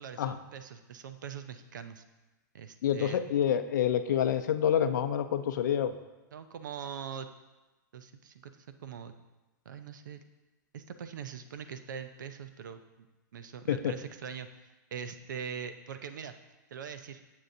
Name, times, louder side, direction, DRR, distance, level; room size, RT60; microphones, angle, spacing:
voice 1, 0.0-2.0 2.5-3.3 6.3-7.3 7.9-9.1 9.7-10.2 10.7-13.1 13.3-14.5 14.9-16.3 16.7-17.2, right 7 dB, 75° right, 10 dB, 0.6 m, -42 dB
voice 2, 2.8-6.0 13.7-13.9, left 9 dB, 65° left, 10 dB, 0.5 m, -27 dB
8.8 x 7.4 x 2.7 m, 1.1 s
hypercardioid pair, 110°, 10 cm